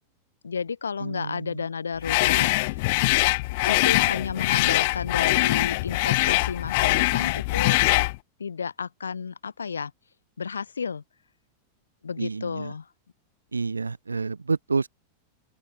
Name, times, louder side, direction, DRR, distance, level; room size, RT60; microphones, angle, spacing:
voice 1, 0.4-2.9 3.7-7.8 8.4-9.9 10.4-11.0 12.0-12.9, left 6 dB, 80° left, 2.7 m, -32 dB
voice 2, 1.0-1.6 12.2-12.7 13.5-14.9, right 4 dB, 85° right, 0.6 m, -29 dB
sound 1, 2.0-8.2, left 23 dB, 55° left, 0.5 m, -23 dB
open air
figure-of-eight pair, 95°, 0 cm